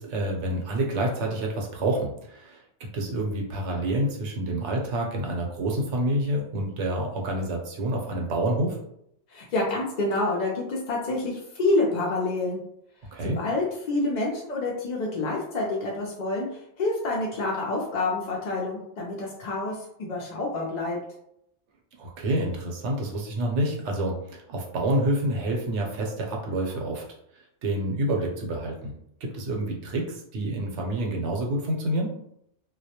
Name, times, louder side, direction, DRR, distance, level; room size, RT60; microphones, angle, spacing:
voice 1, 0.0-8.8 13.1-13.4 22.0-27.0 27.6-28.9 29.2-32.1, right 1 dB, 75° right, 0 dB, 0.9 m, -28 dB
voice 2, 9.3-12.6 13.2-21.0, left 2 dB, 60° left, -3 dB, 0.4 m, -28 dB
2.2 x 2.1 x 2.7 m, 0.74 s
omnidirectional pair, 1.2 m